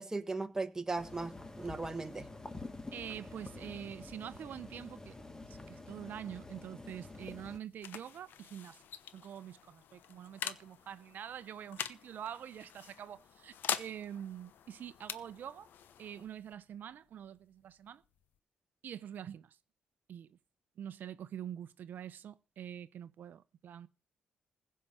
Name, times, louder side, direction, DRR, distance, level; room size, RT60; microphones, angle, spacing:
voice 1, 0.0-2.3, right 3 dB, 15° right, 1.2 m, -37 dB
sound 1, 1.0-7.6, left 2 dB, 20° left, 1.5 m, -48 dB
voice 2, 2.9-5.2 5.4-8.8 9.1-15.7 16.0-18.0 18.8-19.6 20.1-20.4 20.8-23.9, right 9 dB, 65° right, 0.6 m, -45 dB
sound 2, 7.2-18.4, left 9 dB, 70° left, 0.9 m, -45 dB
15.5 x 5.6 x 7.6 m
cardioid pair, 80°, 3 cm